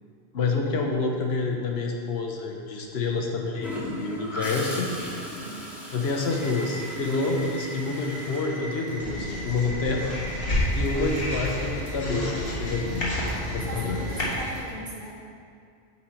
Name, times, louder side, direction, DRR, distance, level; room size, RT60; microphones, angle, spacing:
voice 1, 0.3-4.9 5.9-10.2 10.7-13.1 13.5-14.0, left 3 dB, 85° left, 1 dB, 1.1 m, -28 dB
Gurgling / Toilet flush, 3.6-9.3 11.4-11.6, left 1 dB, ahead, 1.1 m, -38 dB
voice 2, 5.4-5.8 10.5-10.9 13.4-15.2, right 1 dB, 50° right, -4 dB, 1.2 m, -40 dB
sound 1, 6.3-14.6, equal, 40° left, 1.4 m, -38 dB
sound 2, 9.0-14.2, left 1 dB, 65° left, 1.6 m, -30 dB
8.9 x 4.2 x 4.4 m, 2.3 s
omnidirectional pair, 1.0 m